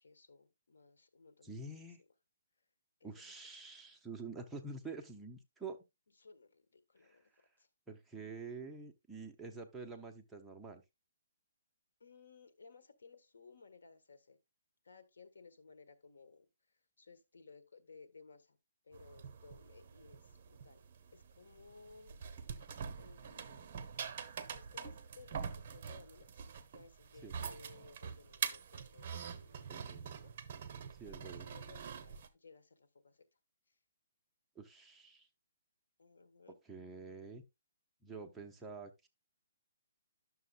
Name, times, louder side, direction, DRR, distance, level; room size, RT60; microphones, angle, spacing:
voice 1, 0.0-1.7 3.0-3.3 6.2-7.3 7.6-7.7 12.0-14.4 14.8-16.5 17.0-18.6 18.8-20.8 21.1-22.5 23.0-23.8 24.5-25.5 25.7-30.3 31.0-33.2 33.7-33.8 36.0-36.6, left 4 dB, 90° left, 1.4 m, -60 dB
voice 2, 1.4-2.0 3.0-5.8 7.0-7.2 7.9-10.8 27.2-27.4 29.7-30.2 31.0-31.5 34.6-35.3 36.6-37.4 38.0-39.1, right 4 dB, 5° right, 0.7 m, -47 dB
sound 1, 18.9-32.3, right 6 dB, 30° right, 1.0 m, -45 dB
11.0 x 6.7 x 2.4 m
hypercardioid pair, 170°, 0 cm